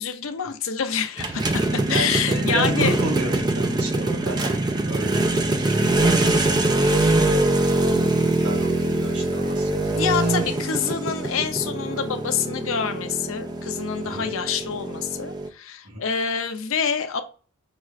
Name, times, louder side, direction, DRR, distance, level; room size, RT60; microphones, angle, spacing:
voice 1, 0.0-2.9 9.9-17.2, left 6 dB, 65° left, 0.6 m, -27 dB
sound 1, 1.2-15.5, right 2 dB, 20° right, 0.5 m, -23 dB
voice 2, 1.9-7.3 7.8-10.6 14.0-14.3 15.8-16.0, right 2 dB, 90° right, 1.5 m, -32 dB
6.1 x 2.4 x 3.1 m
head